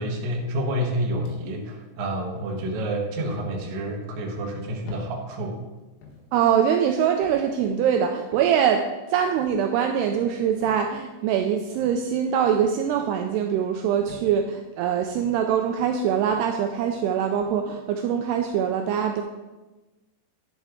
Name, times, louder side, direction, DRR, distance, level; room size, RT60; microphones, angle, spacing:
voice 1, 0.0-5.6, right 1 dB, 65° right, 1 dB, 2.0 m, -29 dB
sound 1, 1.2-1.7 2.4-2.6 3.6-3.8 4.8-5.1 6.0-6.3 7.2-7.5 8.3-8.6 9.4-9.6 10.6-10.8 11.7-11.9 12.9-13.1 14.1-14.3 15.1-15.3 16.2-16.5 17.4-17.6, left 3 dB, 75° left, 3.5 m, -47 dB
voice 2, 6.3-19.2, right 8 dB, 85° right, 5 dB, 2.4 m, -23 dB
10.5 x 7.2 x 3.7 m, 1.1 s
omnidirectional pair, 5.0 m